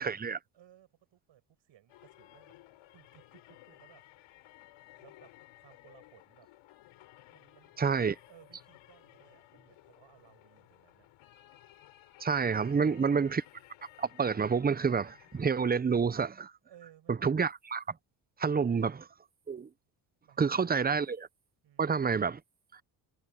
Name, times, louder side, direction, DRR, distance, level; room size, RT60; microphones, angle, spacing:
voice 1, 0.0-0.4 7.8-8.1 12.2-13.4 14.0-16.5 17.1-17.8 18.4-19.0 19.5-19.7 20.4-21.3 21.8-22.4 22.7-22.8, right 5 dB, 20° right, 0.7 m, -28 dB
voice 2, 0.5-2.6 2.9-4.0 4.9-6.5 7.3-11.1 12.5-13.2 16.6-17.3 18.6-19.0 20.2-21.0 21.6-22.2, right 11 dB, 60° right, 7.4 m, -61 dB
sound 1, 1.9-15.8, left 16 dB, 80° left, 4.7 m, -58 dB
cardioid pair, 85°, 49 cm